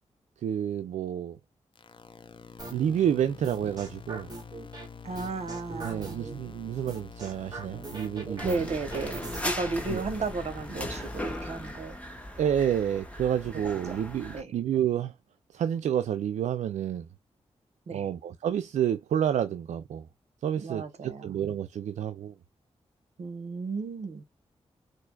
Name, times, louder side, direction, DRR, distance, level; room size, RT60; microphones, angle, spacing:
voice 1, 0.4-1.4 2.7-4.3 5.8-8.6 9.9-10.0 12.4-15.1 15.5-17.1 17.9-20.1 20.4-22.3, right 9 dB, 85° right, 0.4 m, -29 dB
sound 1, 1.8-11.7, left 5 dB, 45° left, 0.6 m, -47 dB
sound 2, 2.6-2.9 3.4-4.9 5.1-6.4 6.9-9.4, right 3 dB, 35° right, 1.9 m, -40 dB
voice 2, 5.0-6.3 8.4-12.0 13.6-14.0 14.3-14.5 17.9-18.1 20.6-21.4 23.2-24.2, right 3 dB, 65° right, 0.9 m, -34 dB
sound 3, 8.4-14.4, left 1 dB, 10° left, 1.2 m, -38 dB
4.5 x 2.5 x 2.2 m
cardioid pair, 60°, 12 cm